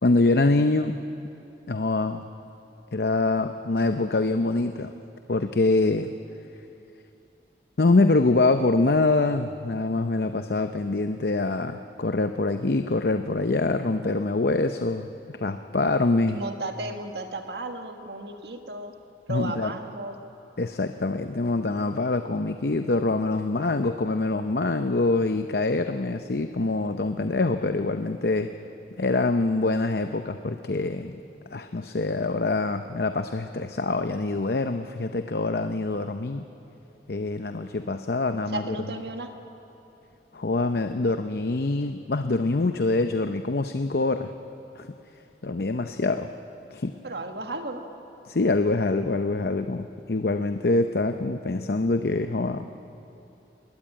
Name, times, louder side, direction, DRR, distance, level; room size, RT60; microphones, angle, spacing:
voice 1, 0.0-1.0 1.7-2.2 2.9-4.9 5.3-6.1 7.8-16.4 19.3-19.7 20.6-28.5 29.0-31.2 31.5-36.4 37.1-38.8 40.3-44.3 44.7-44.9 45.4-46.3 46.7-46.9 48.3-52.7, left 2 dB, 60° left, 8 dB, 0.7 m, -25 dB
voice 2, 16.3-18.9 19.3-20.2 38.5-39.3 47.0-47.8, right 2 dB, 70° right, 5 dB, 1.8 m, -34 dB
21.5 x 19.0 x 8.9 m, 2.8 s
head